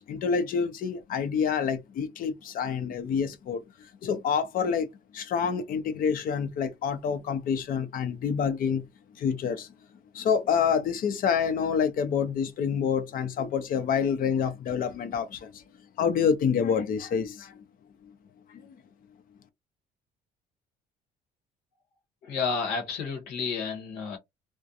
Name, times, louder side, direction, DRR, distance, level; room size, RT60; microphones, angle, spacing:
voice 1, 0.1-4.9 5.1-8.9 9.2-9.7 10.1-15.6 16.0-17.6 18.5-18.7, left 7 dB, 55° left, 0.6 m, -27 dB
voice 2, 22.2-24.2, left 5 dB, 90° left, 1.0 m, -31 dB
2.4 x 2.1 x 2.7 m
cardioid pair, 110°, 17 cm